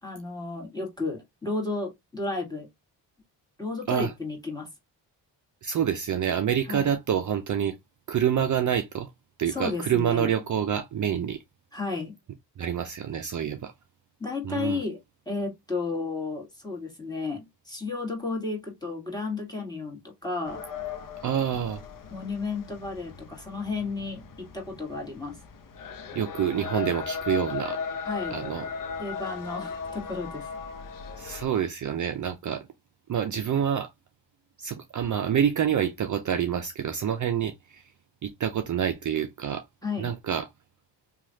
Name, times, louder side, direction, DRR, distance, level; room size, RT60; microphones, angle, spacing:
voice 1, 0.0-2.7 3.6-4.7 6.7-6.9 9.5-10.3 11.7-12.1 14.2-15.0 15.2-20.6 22.1-25.4 28.0-28.4 29.0-30.5 39.8-40.1, left 3 dB, 10° left, 1.7 m, -33 dB
voice 2, 5.6-7.8 8.1-9.1 9.4-11.4 12.6-13.7 14.4-14.8 21.2-21.8 26.1-27.8 28.3-28.6 31.2-32.7 33.1-33.9 34.6-37.8 38.2-39.6 40.0-40.5, right 9 dB, 45° right, 0.5 m, -27 dB
sound 1, 20.4-31.5, left 6 dB, 50° left, 0.7 m, -37 dB
3.0 x 2.4 x 2.7 m
cardioid pair, 65°, 43 cm